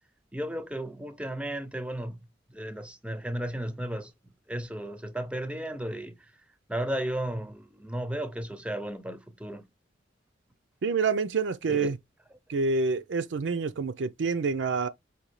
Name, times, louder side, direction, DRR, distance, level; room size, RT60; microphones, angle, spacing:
voice 1, 0.3-2.2 2.5-4.1 4.5-6.2 6.7-9.6 11.7-11.9, right 1 dB, 5° right, 0.5 m, -34 dB
voice 2, 10.8-12.0 12.5-14.9, right 4 dB, 80° right, 0.5 m, -27 dB
5.2 x 2.7 x 3.1 m
head